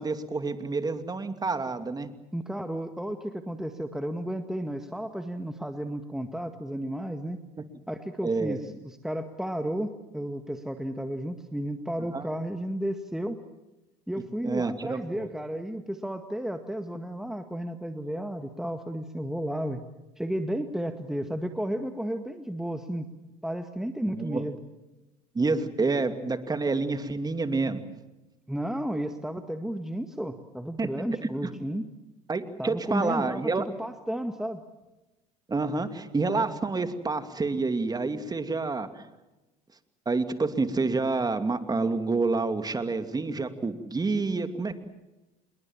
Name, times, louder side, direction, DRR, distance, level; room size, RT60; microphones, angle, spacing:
voice 1, 0.0-2.1 8.2-8.6 12.1-12.3 14.4-15.3 24.0-24.4 25.3-27.8 30.8-30.9 32.3-33.6 35.5-39.1 40.1-44.7, right 3 dB, 20° right, 9 dB, 2.6 m, -28 dB
voice 2, 2.3-7.4 7.9-13.4 14.1-19.8 20.2-23.1 23.4-24.6 28.5-31.8 32.6-33.5 33.8-34.6, equal, ahead, 7 dB, 1.9 m, -33 dB
27.0 x 22.0 x 7.5 m, 1.0 s
supercardioid pair, 85°, 19 cm